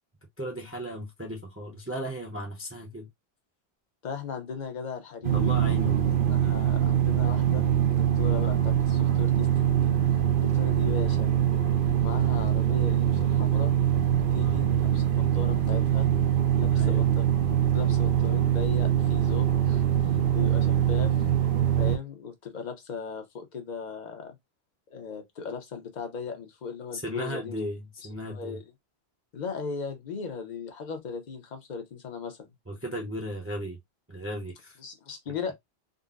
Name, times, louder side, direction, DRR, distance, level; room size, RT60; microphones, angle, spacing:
voice 1, 0.4-3.1 5.3-6.2 14.3-14.8 16.7-17.1 26.9-28.6 32.7-33.8 34.1-34.8, equal, 15° right, 0.7 m, -36 dB
voice 2, 4.0-5.5 6.3-7.7 8.0-9.9 10.4-11.3 11.9-13.7 14.3-16.1 16.5-17.3 17.7-19.8 20.3-21.2 21.8-24.4 24.9-27.6 28.3-28.6 29.3-32.5 34.8-35.5, left 5 dB, 50° left, 0.8 m, -37 dB
sound 1, 5.2-22.0, right 10 dB, 60° right, 0.8 m, -23 dB
3.8 x 2.1 x 2.4 m
omnidirectional pair, 1.1 m